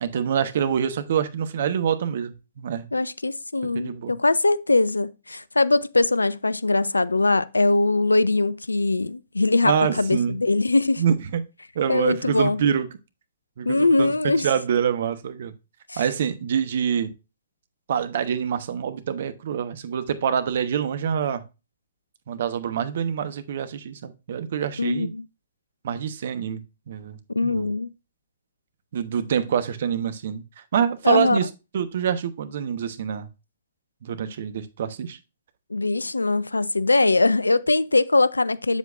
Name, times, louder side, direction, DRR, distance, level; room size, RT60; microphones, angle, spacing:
voice 1, 0.0-2.9 3.7-4.1 9.6-10.4 11.0-11.4 11.7-12.9 13.6-15.5 16.0-17.1 17.9-21.4 22.3-25.1 25.8-27.7 28.9-30.4 30.7-31.5 31.7-33.3 34.0-35.2, right 8 dB, 55° right, 1.0 m, -26 dB
voice 2, 2.9-11.0 11.9-12.6 13.7-14.5 15.9-16.0 24.8-25.2 27.4-27.9 31.0-31.4 35.7-38.8, left 2 dB, 80° left, 0.5 m, -21 dB
8.0 x 7.4 x 2.5 m
figure-of-eight pair, 115°, 0 cm